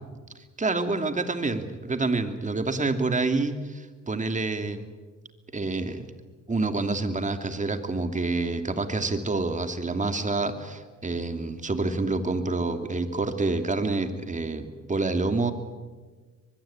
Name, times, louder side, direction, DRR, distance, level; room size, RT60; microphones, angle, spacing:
voice 1, 0.6-4.9 5.5-6.1 6.5-15.5, right 3 dB, 25° right, 8 dB, 2.7 m, -27 dB
23.5 x 21.5 x 8.9 m, 1.4 s
cardioid pair, 90°, 30 cm